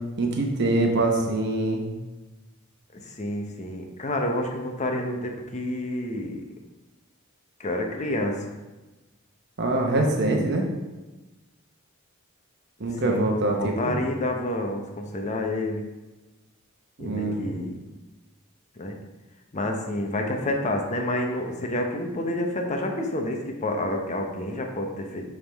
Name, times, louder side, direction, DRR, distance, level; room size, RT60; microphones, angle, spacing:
voice 1, 0.2-1.8 9.6-10.6 12.8-14.0 17.0-17.5, right 2 dB, 55° right, 1 dB, 0.9 m, -24 dB
voice 2, 2.9-6.4 7.6-8.6 13.0-15.8 17.0-17.8 18.8-19.0 19.5-25.2, left 1 dB, 35° left, 2 dB, 0.8 m, -29 dB
9.3 x 3.6 x 3.5 m, 1.1 s
head